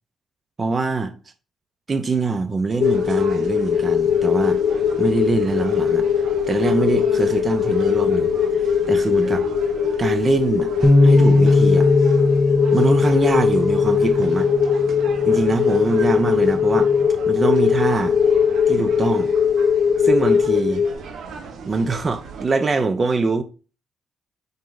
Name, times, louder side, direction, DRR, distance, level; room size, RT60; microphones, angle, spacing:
voice 1, 0.6-1.1 1.9-4.6 5.0-6.0 6.5-8.3 8.9-9.5 10.0-10.7 11.0-11.9 12.7-14.5 15.2-16.9 17.3-18.2 18.7-19.3 20.0-20.8 21.6-23.4, right 3 dB, 35° right, 0.7 m, -23 dB
sound 1, 2.8-20.9, left 7 dB, 65° left, 0.6 m, -20 dB
sound 2, 2.8-22.5, right 5 dB, 65° right, 1.3 m, -38 dB
Bass guitar, 10.8-17.1, left 2 dB, 5° right, 0.9 m, -20 dB
5.5 x 4.5 x 3.9 m
cardioid pair, 90°, 0 cm